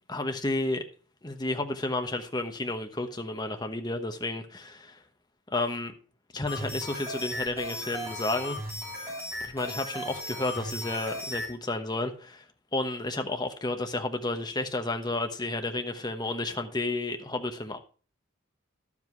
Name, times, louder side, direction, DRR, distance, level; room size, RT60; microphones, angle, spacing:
voice 1, 0.1-0.8 1.2-5.0 5.5-5.9 6.3-8.6 9.4-12.4 12.7-17.8, left 2 dB, 20° left, 1.1 m, -31 dB
sound 1, 6.5-11.5, left 1 dB, 10° right, 3.4 m, -36 dB
11.5 x 7.5 x 4.6 m
head